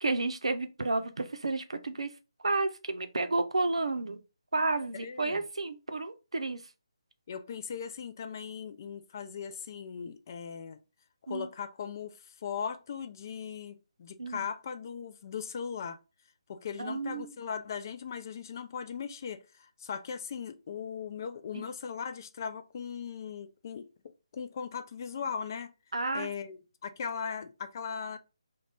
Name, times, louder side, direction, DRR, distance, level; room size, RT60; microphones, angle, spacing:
voice 1, 0.0-2.1 2.4-4.2 4.5-6.6 11.3-11.5 14.2-14.5 16.8-17.3 21.5-21.6 25.9-26.3, right 3 dB, 75° right, 0.5 m, -31 dB
voice 2, 4.9-5.4 7.3-10.8 11.3-16.0 16.5-25.7 26.1-28.2, left 7 dB, 35° left, 0.3 m, -39 dB
2.4 x 2.2 x 3.3 m
figure-of-eight pair, 155°, 3 cm